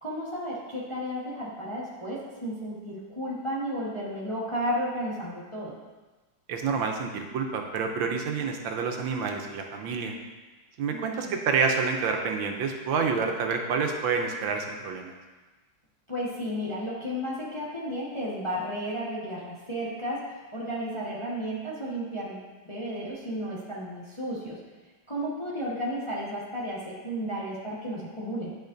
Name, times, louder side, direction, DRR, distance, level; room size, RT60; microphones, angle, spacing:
voice 1, 0.0-5.8 10.9-11.4 16.1-24.6 25.1-28.5, equal, 20° left, -7 dB, 0.9 m, -33 dB
voice 2, 6.5-10.1 10.8-15.1, right 5 dB, 80° right, 3 dB, 1.4 m, -28 dB
10.5 x 5.0 x 2.6 m, 1.3 s
omnidirectional pair, 2.1 m